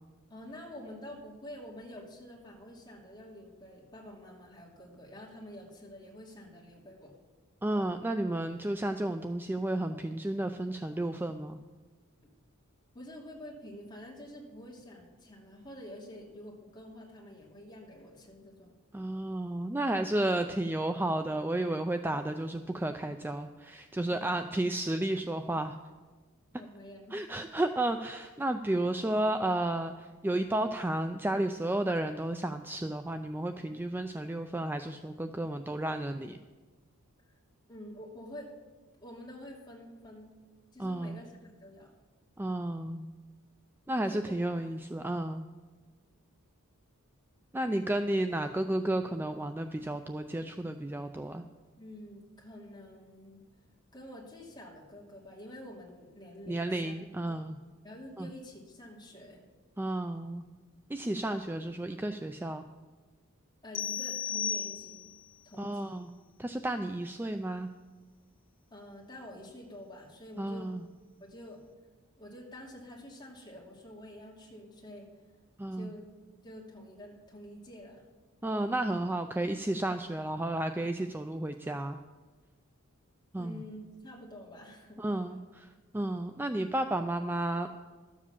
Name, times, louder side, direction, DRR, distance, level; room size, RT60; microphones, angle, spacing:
voice 1, 0.3-7.1 12.9-18.7 24.1-24.6 26.5-27.3 37.7-38.5 39.0-40.3 40.7-41.9 44.1-44.4 51.8-53.4 53.9-56.9 57.3-57.4 57.8-59.4 63.6-65.1 65.4-66.0 68.7-70.7 71.2-71.6 72.2-75.1 75.7-76.1 76.4-78.0 83.4-85.4, left 1 dB, 20° left, -4 dB, 2.8 m, -48 dB
voice 2, 7.6-11.6 18.9-25.8 27.1-36.4 40.8-41.2 42.4-43.1 43.9-45.5 47.5-51.4 56.5-57.6 58.2-58.3 59.8-60.4 60.9-62.7 65.6-66.1 66.4-67.7 70.4-70.8 75.6-75.9 78.4-82.0 83.3-83.6 85.0-87.8, right 1 dB, 10° right, 7 dB, 0.4 m, -32 dB
sound 1, 63.7-65.3, left 8 dB, 60° left, 0.8 m, -35 dB
13.0 x 7.4 x 7.1 m, 1.3 s
head